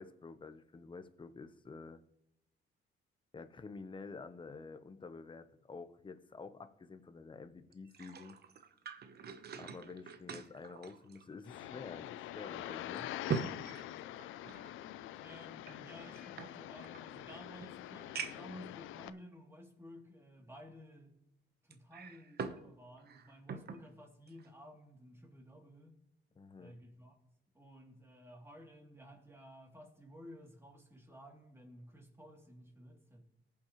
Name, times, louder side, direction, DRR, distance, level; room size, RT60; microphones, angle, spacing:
voice 1, 0.0-2.0 3.3-8.4 9.6-13.1 26.4-26.8, left 4 dB, 25° left, 10 dB, 0.9 m, -49 dB
sound 1, 7.7-11.7 12.1-12.2 12.7-14.7 15.6-17.0 17.6-17.7 18.1-18.6 19.3-19.4 21.7-22.7 23.0-23.8 24.3-24.5, right 6 dB, 55° right, 1.0 m, -43 dB
sound 2, 11.5-19.1, left 13 dB, 85° left, 0.5 m, -45 dB
voice 2, 15.2-21.2 21.6-26.0 26.6-27.2 27.5-33.2, equal, 10° right, 0 dB, 2.8 m, -54 dB
19.5 x 7.2 x 3.1 m, 0.84 s
cardioid pair, 90°, 20 cm